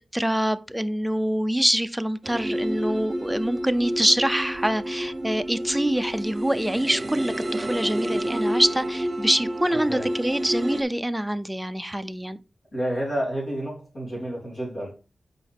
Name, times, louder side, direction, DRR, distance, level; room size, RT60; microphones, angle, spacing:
voice 1, 0.1-12.4, right 1 dB, 5° right, 0.5 m, -25 dB
sound 1, 2.2-10.8, right 1 dB, 35° right, 0.8 m, -29 dB
voice 2, 9.7-10.1 12.7-15.0, right 1 dB, 60° left, 3.3 m, -30 dB
6.1 x 5.0 x 3.4 m
wide cardioid pair, 85°, 0 cm